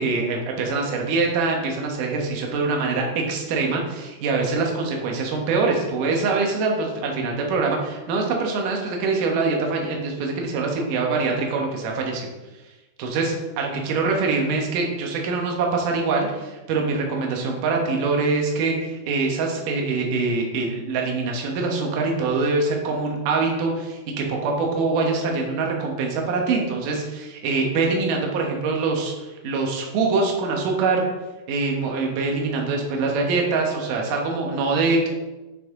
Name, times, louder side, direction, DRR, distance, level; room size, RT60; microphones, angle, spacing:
voice 1, 0.0-12.3 13.0-29.1 29.4-31.0 31.5-35.1, right 3 dB, 70° right, 1 dB, 2.1 m, -24 dB
8.5 x 5.5 x 3.7 m, 1.1 s
omnidirectional pair, 5.3 m